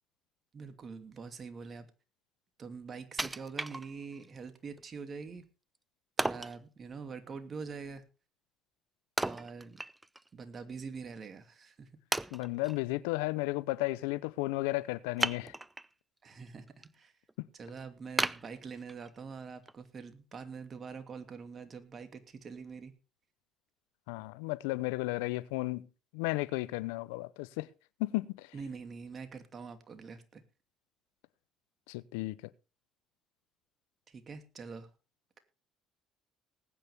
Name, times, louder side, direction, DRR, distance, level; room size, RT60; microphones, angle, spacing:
voice 1, 0.5-1.9 2.6-5.5 6.2-8.0 9.2-9.8 10.3-11.9 16.2-17.1 17.5-22.9 28.5-30.4 34.1-34.9, right 5 dB, 40° right, 2.6 m, -44 dB
Wood, 3.2-4.3 4.8-4.9 6.2-6.6 9.2-10.3 10.6-10.7 11.4-11.5 12.1-12.8 15.2-15.9 16.4-16.9 17.3-17.4 18.2-19.2 19.7-19.8, right 2 dB, 15° right, 0.6 m, -35 dB
voice 2, 12.3-15.5 17.4-17.5 24.1-25.9 26.1-27.7 28.0-28.5 31.9-32.3, left 21 dB, 80° left, 0.6 m, -34 dB
19.5 x 9.5 x 3.5 m
hypercardioid pair, 65°, 0 cm